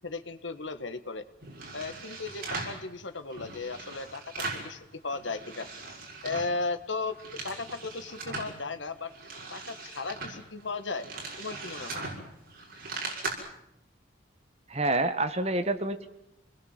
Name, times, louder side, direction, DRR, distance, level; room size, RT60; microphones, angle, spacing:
voice 1, 0.0-1.2 1.7-5.7 6.2-7.2 7.4-9.1 9.5-11.1 11.4-12.0, left 3 dB, 75° left, 9 dB, 1.7 m, -36 dB
sound 1, 1.4-2.8 3.3-4.7 5.1-6.6 6.9-8.5 9.0-13.3, right 3 dB, 50° right, 6.4 m, -39 dB
voice 2, 14.7-16.1, right 2 dB, 35° right, 9 dB, 1.6 m, -27 dB
28.5 x 21.0 x 7.6 m, 0.81 s
head